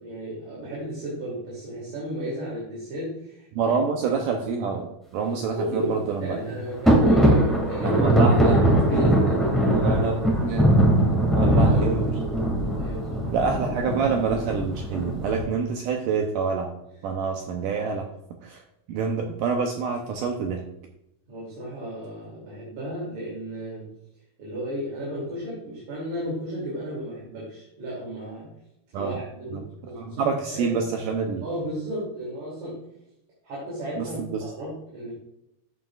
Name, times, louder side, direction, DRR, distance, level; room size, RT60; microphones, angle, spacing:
voice 1, 0.0-3.7 5.2-8.4 8.7-10.1 11.4-12.0 12.8-13.4 21.3-23.9 24.4-28.5 28.9-30.8 31.4-32.9 33.4-35.1, equal, 50° right, -6 dB, 3.9 m, -34 dB
voice 2, 3.5-6.4 7.8-10.7 11.2-12.2 13.3-16.7 17.0-18.1 18.4-18.6 18.9-20.6 28.9-29.2 29.5-29.6 29.9-31.4 34.0-34.4, right 5 dB, 75° right, 3 dB, 2.0 m, -27 dB
sound 1, 6.8-15.4, right 1 dB, ahead, 0.7 m, -21 dB
11.5 x 7.5 x 2.4 m, 0.82 s
omnidirectional pair, 4.4 m